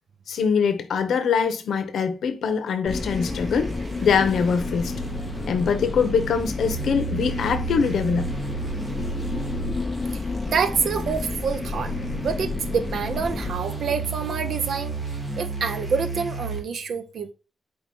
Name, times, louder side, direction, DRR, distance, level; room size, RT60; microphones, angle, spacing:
voice 1, 0.3-3.7 4.0-4.9 5.5-8.3, left 6 dB, 80° left, 0.8 m, -23 dB
sound 1, 2.9-13.5, left 3 dB, 25° left, 0.6 m, -32 dB
sound 2, 2.9-16.6, right 2 dB, 20° right, 1.2 m, -33 dB
voice 2, 10.1-15.0 15.4-17.3, right 6 dB, 70° right, 0.6 m, -27 dB
4.6 x 3.0 x 3.4 m
wide cardioid pair, 150°, 0 cm